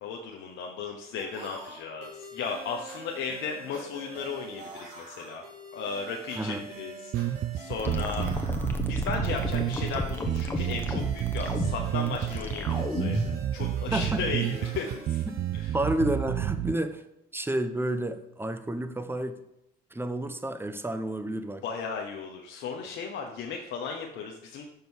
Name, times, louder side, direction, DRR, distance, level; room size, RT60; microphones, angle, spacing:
voice 1, 0.0-5.4 5.7-8.4 8.9-15.2 15.5-15.8 21.6-24.7, left 5 dB, 70° left, 1 dB, 1.0 m, -36 dB
sound 1, 1.2-16.7, right 3 dB, 85° right, 2.2 m, -46 dB
sound 2, 7.1-16.7, right 12 dB, 55° right, 0.4 m, -30 dB
sound 3, 7.8-13.4, left 2 dB, 10° left, 1.3 m, -32 dB
voice 2, 13.9-14.2 15.3-15.4 15.7-17.0 17.3-19.4 19.9-21.6, right 1 dB, 10° right, 10 dB, 0.9 m, -30 dB
6.6 x 5.3 x 6.2 m, 0.82 s
supercardioid pair, 65°, 20 cm